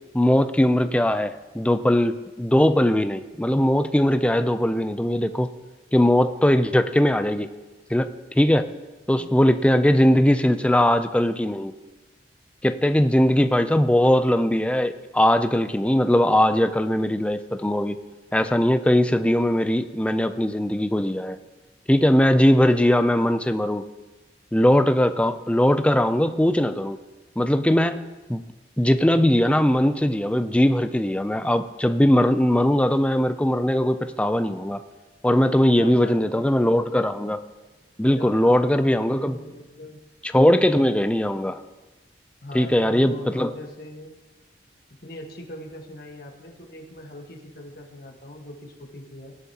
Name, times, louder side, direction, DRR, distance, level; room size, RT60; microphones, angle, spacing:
voice 1, 0.1-5.5 5.9-7.5 7.9-8.7 9.1-11.8 12.6-18.0 18.3-21.4 21.9-23.8 24.5-27.0 27.4-28.4 28.8-34.8 35.2-37.4 38.0-39.4 40.2-41.6 42.5-43.5, left 1 dB, 5° left, 10 dB, 0.4 m, -20 dB
voice 2, 9.2-9.5 35.7-37.1 38.1-40.0 42.4-44.1 45.0-49.3, left 1 dB, 55° left, 1 dB, 1.5 m, -41 dB
18.0 x 11.0 x 2.9 m, 1.2 s
head